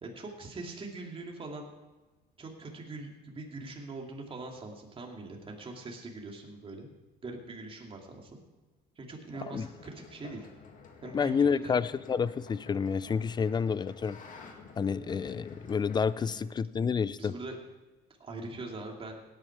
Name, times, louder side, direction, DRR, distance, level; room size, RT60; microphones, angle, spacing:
voice 1, 0.0-1.7 2.4-6.9 7.2-8.4 9.0-10.5 11.0-11.7 16.3-16.5 17.2-17.6 18.2-19.2, right 2 dB, 30° right, 1 dB, 2.6 m, -42 dB
sound 1, 9.5-16.3, left 4 dB, 50° left, 2.1 m, -50 dB
voice 2, 11.1-14.2 14.8-17.4, left 6 dB, 25° left, 18 dB, 0.4 m, -29 dB
17.0 x 9.2 x 4.7 m, 1.2 s
cardioid pair, 110°, 17 cm